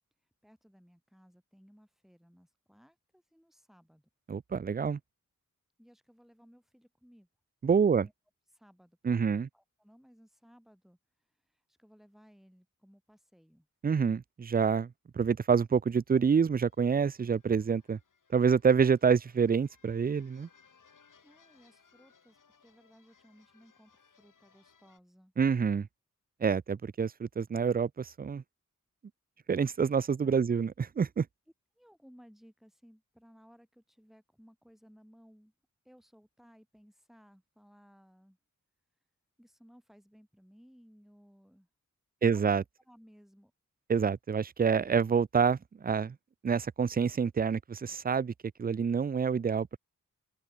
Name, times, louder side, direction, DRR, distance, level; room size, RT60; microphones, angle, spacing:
voice 1, 0.4-4.1 5.8-7.3 7.8-8.1 8.5-11.0 11.3-13.7 21.2-25.3 30.2-30.4 31.7-35.5 35.8-38.4 39.4-41.7 42.2-43.5, equal, ahead, 7.6 m, -60 dB
voice 2, 4.3-5.0 7.6-8.1 9.0-9.5 13.8-14.9 15.2-18.0 18.3-20.5 25.4-25.9 26.4-28.4 29.5-31.3 42.2-42.6 43.9-46.2 46.4-48.3 48.6-49.8, right 6 dB, 30° right, 0.4 m, -27 dB
sound 1, 16.5-25.0, left 6 dB, 85° left, 6.9 m, -66 dB
wide cardioid pair, 125°, 31 cm